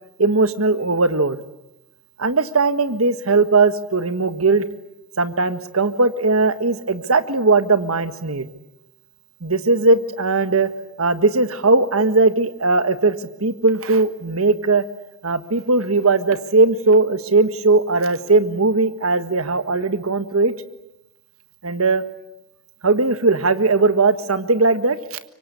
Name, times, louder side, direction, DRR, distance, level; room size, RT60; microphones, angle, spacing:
voice 1, 0.2-1.4 2.2-4.7 5.2-8.5 9.4-10.7 11.0-14.8 15.2-20.5 21.6-22.0 22.8-25.2, right 3 dB, 80° right, 10 dB, 1.6 m, -18 dB
25.0 x 24.5 x 9.7 m, 0.91 s
head